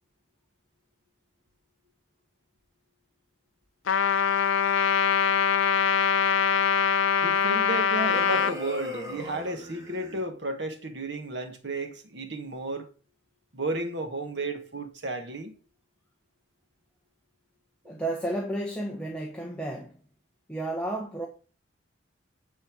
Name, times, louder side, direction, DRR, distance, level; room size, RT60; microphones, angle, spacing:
Trumpet, 3.9-8.5, left 7 dB, 75° left, 0.6 m, -23 dB
voice 1, 7.2-12.9 13.5-15.6, right 2 dB, 55° right, 1.6 m, -33 dB
sound 1, 8.1-10.2, left 1 dB, 15° right, 1.9 m, -38 dB
voice 2, 17.8-19.9 20.5-21.3, right 1 dB, 5° left, 1.2 m, -32 dB
10.5 x 4.5 x 6.0 m
head